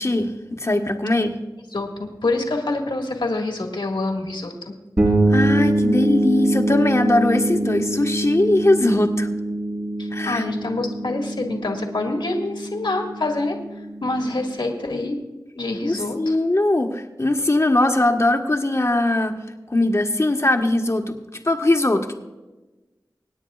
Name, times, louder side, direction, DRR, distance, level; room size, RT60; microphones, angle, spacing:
voice 1, 0.0-1.4 5.3-9.3 10.1-10.4 15.8-19.3 19.7-21.1 21.4-22.2, left 2 dB, 35° left, 4 dB, 1.4 m, -20 dB
voice 2, 1.7-4.7 10.0-13.6 14.0-15.2 15.6-16.4, left 2 dB, 80° left, 2 dB, 1.8 m, -26 dB
sound 1, 5.0-14.6, right 1 dB, 45° right, 4.6 m, -24 dB
25.5 x 9.6 x 2.4 m, 1.1 s
wide cardioid pair, 45°, 8 cm